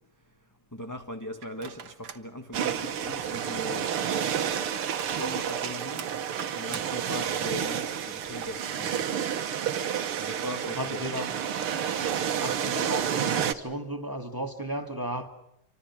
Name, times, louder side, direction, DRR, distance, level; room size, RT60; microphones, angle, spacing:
voice 1, 0.7-3.9 4.2-4.6 5.1-6.1 6.5-9.0 10.2-11.3, left 1 dB, 10° left, 3 dB, 1.5 m, -39 dB
sound 1, 1.4-2.3 2.7-8.8 9.2-9.3 10.2-11.7, right 8 dB, 65° right, 2.1 m, -46 dB
sound 2, 2.5-13.5, right 8 dB, 80° right, 2.2 m, -30 dB
voice 2, 10.6-11.3 12.3-15.3, equal, 10° right, 5 dB, 2.3 m, -34 dB
29.0 x 24.5 x 6.0 m, 0.83 s
omnidirectional pair, 2.4 m